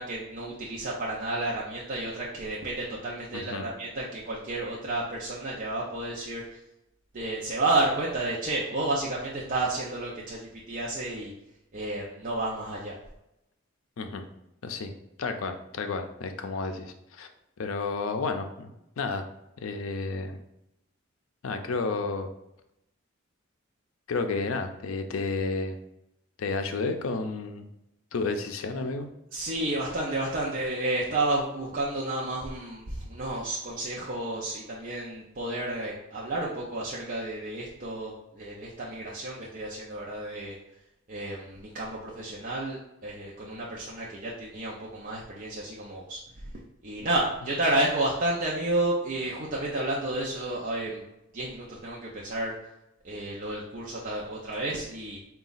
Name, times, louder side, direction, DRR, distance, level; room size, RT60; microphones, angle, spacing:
voice 1, 0.0-6.4 7.1-11.3 11.7-13.0 29.3-40.6 41.1-46.2 46.8-51.0 51.3-52.5 53.0-55.2, right 2 dB, 40° right, -5 dB, 0.5 m, -31 dB
voice 2, 3.3-3.7 14.0-14.3 14.6-14.9 15.2-17.3 17.6-19.3 19.6-20.4 21.4-22.3 24.1-25.8 26.4-27.7 28.1-29.1, left 3 dB, 80° left, 7 dB, 0.4 m, -31 dB
3.9 x 2.3 x 3.9 m, 0.88 s
head